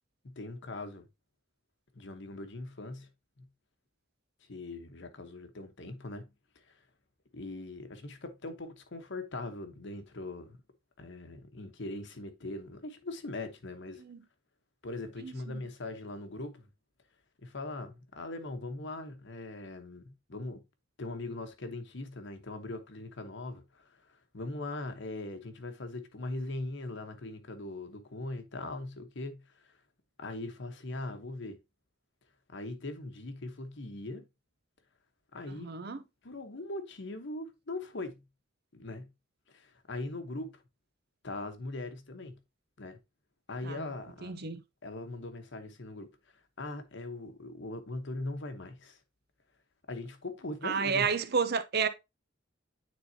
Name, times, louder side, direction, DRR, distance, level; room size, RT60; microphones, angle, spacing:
voice 1, 0.2-1.1 1.9-3.1 3.4-3.5 4.5-6.3 6.7-6.8 7.3-10.6 11.0-14.0 14.8-16.7 17.4-20.6 21.0-24.0 24.3-29.4 30.2-31.6 32.5-34.3 35.3-35.7 36.2-38.2 38.7-39.1 39.5-40.6 41.2-42.4 42.8-43.0 43.5-44.4 44.8-46.1 46.6-49.0 49.9-51.1, left 2 dB, 65° left, 1.1 m, -40 dB
voice 2, 15.2-15.6 35.5-36.0 43.6-43.9 44.2-44.6 50.6-51.9, right 5 dB, 55° right, 0.7 m, -31 dB
9.3 x 4.0 x 2.8 m
head